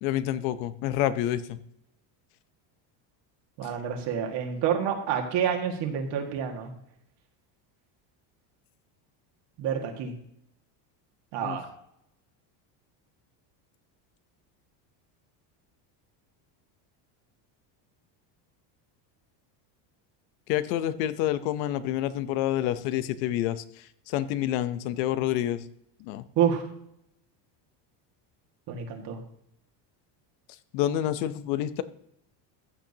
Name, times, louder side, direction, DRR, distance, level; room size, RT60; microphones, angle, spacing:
voice 1, 0.0-1.6 11.4-11.6 20.5-25.6 26.0-26.3 30.7-31.8, left 12 dB, 90° left, 13 dB, 0.9 m, -28 dB
voice 2, 3.6-6.7 9.6-10.1 11.3-11.7 26.4-26.6 28.7-29.2, right 8 dB, 55° right, 2 dB, 1.9 m, -28 dB
15.0 x 8.9 x 2.8 m, 0.74 s
cardioid pair, 155°, 50 cm